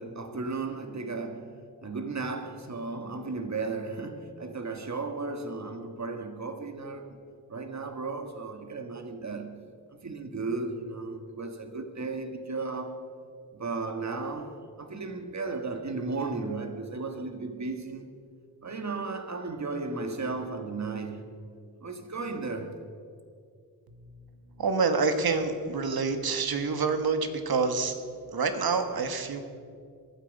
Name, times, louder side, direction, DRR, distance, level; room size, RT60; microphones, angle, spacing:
voice 1, 0.0-1.6 1.8-7.2 7.5-9.6 10.0-13.0 13.5-18.2 18.6-21.3 21.8-22.8, right 3 dB, 50° right, 1.7 m, -35 dB
voice 2, 23.9-29.4, right 4 dB, 80° right, 1.4 m, -28 dB
21.0 x 12.5 x 5.3 m
wide cardioid pair, 85°, 36 cm